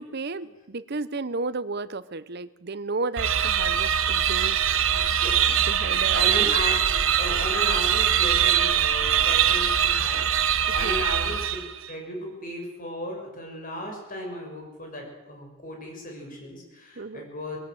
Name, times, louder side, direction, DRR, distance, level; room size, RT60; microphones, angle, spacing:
voice 1, 0.0-4.7 5.4-6.6 10.8-11.0 17.0-17.3, right 3 dB, 50° right, 15 dB, 0.8 m, -33 dB
sound 1, 3.2-11.9, right 9 dB, 75° right, 1.3 m, -22 dB
voice 2, 4.8-5.6 6.1-11.4 11.9-17.6, left 1 dB, 40° left, 1 dB, 6.3 m, -35 dB
21.5 x 16.0 x 7.9 m, 1.1 s
head